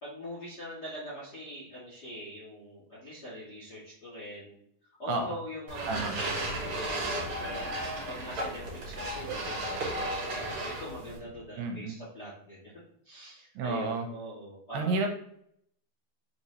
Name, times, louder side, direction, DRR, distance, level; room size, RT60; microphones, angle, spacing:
voice 1, 0.0-4.6 5.0-12.7 13.0-15.0, equal, 55° left, -7 dB, 1.1 m, -43 dB
sound 1, 5.7-11.2, right 1 dB, 55° right, 2.4 m, -34 dB
sound 2, 6.4-11.5, left 1 dB, 75° left, 2.2 m, -49 dB
voice 2, 11.6-12.0 13.6-14.1 14.7-15.1, right 3 dB, 85° right, 4 dB, 2.3 m, -30 dB
5.2 x 2.7 x 3.0 m, 0.69 s
omnidirectional pair, 4.0 m